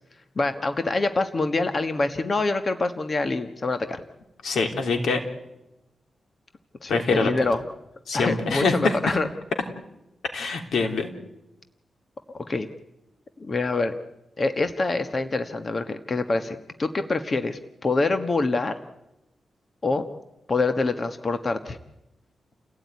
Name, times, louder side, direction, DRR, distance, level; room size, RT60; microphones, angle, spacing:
voice 1, 0.4-4.0 6.8-7.6 8.1-9.3 12.3-12.7 13.4-13.9 14.4-18.7 19.8-20.0 20.5-21.8, left 3 dB, 35° left, 9 dB, 1.4 m, -25 dB
voice 2, 4.4-5.2 6.9-7.3 8.1-9.1 10.3-11.1, left 4 dB, 85° left, 6 dB, 3.3 m, -24 dB
29.5 x 17.0 x 9.6 m, 0.93 s
wide cardioid pair, 135°, 0 cm